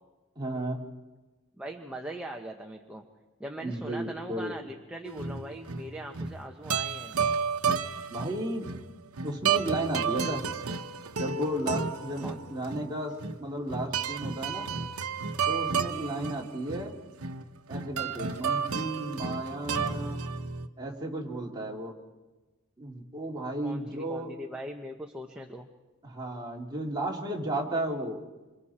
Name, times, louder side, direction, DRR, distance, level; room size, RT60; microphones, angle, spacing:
voice 1, 0.4-0.8 3.6-4.6 8.1-8.7 9.2-10.5 11.2-14.7 15.5-17.0 17.7-20.2 20.8-21.9 22.8-24.3 26.0-28.2, right 1 dB, 20° right, -2 dB, 2.8 m, -34 dB
voice 2, 1.6-3.0 3.4-7.2 12.2-12.4 23.6-25.7, right 1 dB, 5° right, 1 dB, 1.1 m, -41 dB
sound 1, 5.1-20.7, right 6 dB, 85° right, 0.9 m, -32 dB
27.0 x 25.5 x 4.4 m, 1.2 s
head